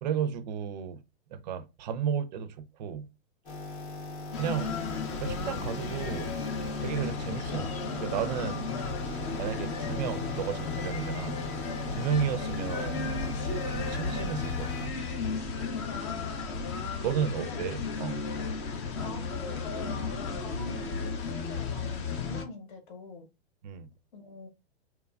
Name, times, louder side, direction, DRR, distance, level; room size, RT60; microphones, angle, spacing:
voice 1, 0.0-1.0 1.3-3.1 4.4-4.7 5.1-6.4 6.8-8.7 9.1-11.4 12.0-14.9 17.0-18.2 23.6-23.9, right 8 dB, 45° right, 0.4 m, -33 dB
sound 1, 3.4-14.9, left 2 dB, 85° left, 1.2 m, -39 dB
sound 2, 4.3-22.5, left 4 dB, 30° left, 0.4 m, -34 dB
voice 2, 15.9-16.7 17.3-17.6 19.0-23.3 24.1-24.5, left 3 dB, 50° left, 0.9 m, -44 dB
3.0 x 2.1 x 2.3 m
hypercardioid pair, 140°, 32 cm